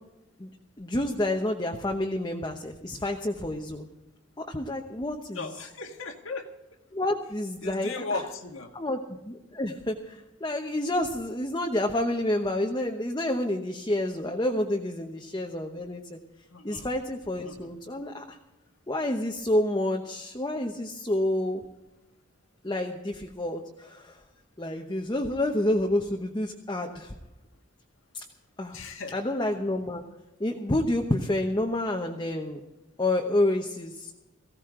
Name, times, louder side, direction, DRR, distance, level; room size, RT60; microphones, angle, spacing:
voice 1, 0.8-3.9 4.4-5.5 6.9-8.0 8.7-16.2 16.6-18.4 18.9-21.6 22.6-24.2 24.6-27.1 28.1-28.2 28.6-28.8 29.1-30.0 30.4-32.6 33.0-34.1, left 1 dB, 20° left, 2 dB, 0.9 m, -29 dB
voice 2, 5.4-6.5 7.6-8.7 16.5-16.9 17.4-17.7 28.7-29.2, left 3 dB, 75° left, 4 dB, 1.8 m, -36 dB
18.5 x 15.5 x 3.8 m, 0.97 s
head